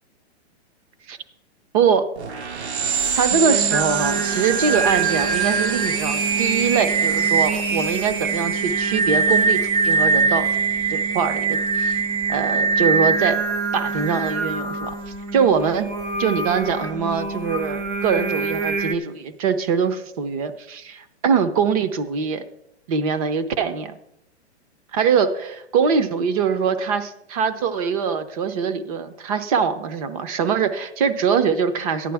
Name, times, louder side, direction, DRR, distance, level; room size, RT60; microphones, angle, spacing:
voice 1, 1.7-2.1 3.2-9.6 9.8-10.5 10.9-12.0 12.3-13.4 13.7-14.9 15.3-15.9 16.2-22.4 22.9-24.0 24.9-32.1, right 6 dB, 30° right, 12 dB, 0.8 m, -23 dB
sound 1, 2.2-12.3, right 7 dB, 70° right, 1.6 m, -29 dB
Singing, 3.0-18.9, right 4 dB, 15° right, 0.4 m, -23 dB
14.5 x 10.0 x 3.5 m, 0.80 s
hypercardioid pair, 155°, 34 cm